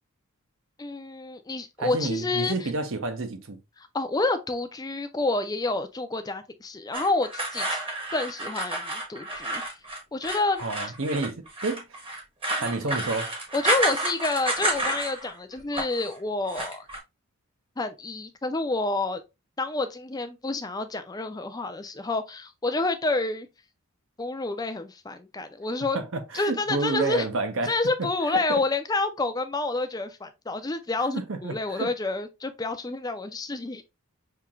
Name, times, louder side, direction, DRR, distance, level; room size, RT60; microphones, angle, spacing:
voice 1, 0.8-2.7 3.8-7.8 8.1-9.6 10.1-10.6 12.6-12.9 13.5-16.9 17.8-19.2 19.6-23.5 24.2-26.0 26.3-27.3 27.7-33.8, left 2 dB, 15° left, 0.4 m, -29 dB
voice 2, 1.8-3.6 10.6-11.8 12.6-13.3 25.9-27.7 28.5-28.6 31.1-31.9, right 3 dB, 60° right, 0.7 m, -29 dB
sound 1, 6.9-15.3 15.6-16.1 16.4-17.0, right 1 dB, 25° right, 1.0 m, -30 dB
5.7 x 2.8 x 2.4 m
head